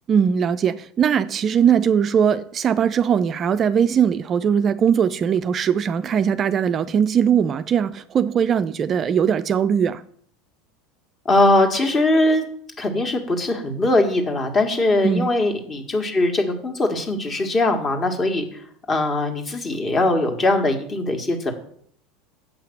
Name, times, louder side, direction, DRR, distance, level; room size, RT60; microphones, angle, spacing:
voice 1, 0.1-10.0 15.0-15.3, right 8 dB, 35° right, 0.4 m, -20 dB
voice 2, 11.3-12.4 12.8-18.5 18.9-21.5, left 2 dB, 30° left, 1.8 m, -21 dB
7.2 x 5.7 x 7.0 m
figure-of-eight pair, 75°, 0 cm